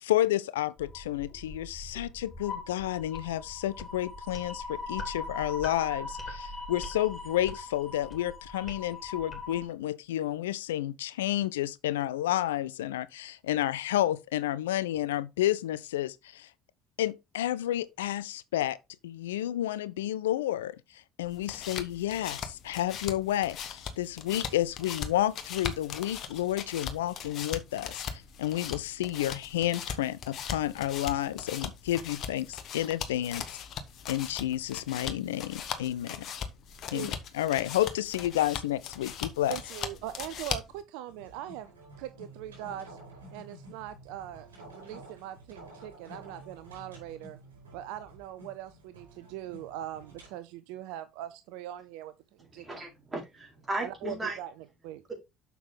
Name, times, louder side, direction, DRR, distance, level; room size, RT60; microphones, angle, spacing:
voice 1, 0.0-16.5 17.0-18.8 19.0-33.5 34.1-36.3 36.9-39.6, left 13 dB, 80° left, 0.3 m, -31 dB
sound 1, 0.8-9.7, left 2 dB, 30° left, 3.2 m, -41 dB
sound 2, 21.2-40.8, left 7 dB, 55° left, 1.2 m, -39 dB
voice 2, 39.5-41.7 42.0-43.0 43.3-47.4 47.7-52.7 53.8-54.5 54.8-55.0, right 12 dB, 70° right, 0.5 m, -41 dB
sound 3, 41.0-50.4, right 2 dB, 85° right, 4.7 m, -51 dB
voice 3, 52.5-54.4 55.1-55.2, right 2 dB, 25° right, 4.6 m, -36 dB
6.8 x 6.1 x 3.7 m
figure-of-eight pair, 55°, 0 cm